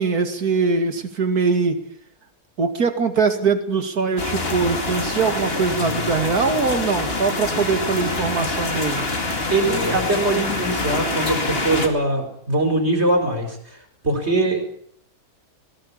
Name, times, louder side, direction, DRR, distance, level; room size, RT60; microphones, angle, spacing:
voice 1, 0.0-1.8 2.6-9.0, right 4 dB, 75° right, 8 dB, 2.7 m, -22 dB
sound 1, 4.2-11.9, left 2 dB, 40° left, 2.6 m, -25 dB
voice 2, 9.5-13.8 14.0-14.6, right 2 dB, 45° right, 4 dB, 5.0 m, -22 dB
19.5 x 17.0 x 8.7 m, 0.65 s
omnidirectional pair, 1.6 m